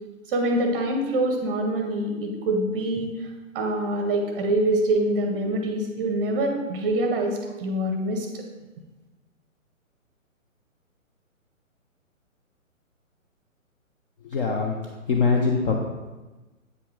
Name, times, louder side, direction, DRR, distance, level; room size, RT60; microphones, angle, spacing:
voice 1, 0.3-3.1 3.5-8.5, right 1 dB, 20° right, 3 dB, 0.7 m, -25 dB
voice 2, 14.2-14.7 15.1-15.8, left 4 dB, 40° left, 0 dB, 0.8 m, -22 dB
8.2 x 5.6 x 3.8 m, 1.2 s
figure-of-eight pair, 135°, 41 cm